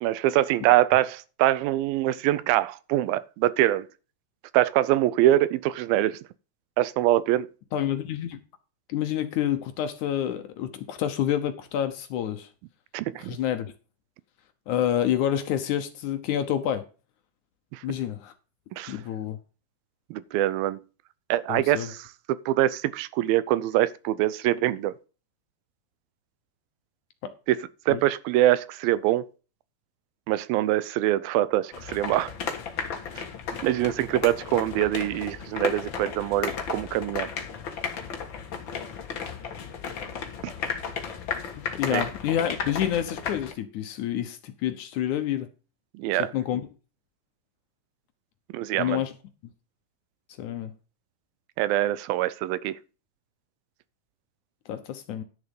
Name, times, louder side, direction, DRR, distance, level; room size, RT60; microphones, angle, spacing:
voice 1, 0.0-3.9 4.5-6.2 6.8-7.5 12.9-13.4 17.7-17.8 18.7-19.0 20.1-20.8 21.3-24.9 27.5-27.6 27.9-29.3 30.3-32.3 33.6-37.3 40.4-40.5 41.9-42.0 46.0-46.3 48.5-49.0 51.6-52.8, right 14 dB, 85° right, 2.5 m, -24 dB
voice 2, 7.7-8.4 8.9-12.5 13.2-13.7 14.7-16.8 17.8-18.3 18.9-19.4 21.5-21.9 27.2-27.3 27.9-28.0 41.7-45.5 46.2-46.6 48.7-49.1 50.4-50.7 54.7-55.2, left 10 dB, 70° left, 2.1 m, -28 dB
sound 1, 31.7-43.5, left 6 dB, 50° left, 1.6 m, -34 dB
11.0 x 6.8 x 5.3 m
omnidirectional pair, 4.2 m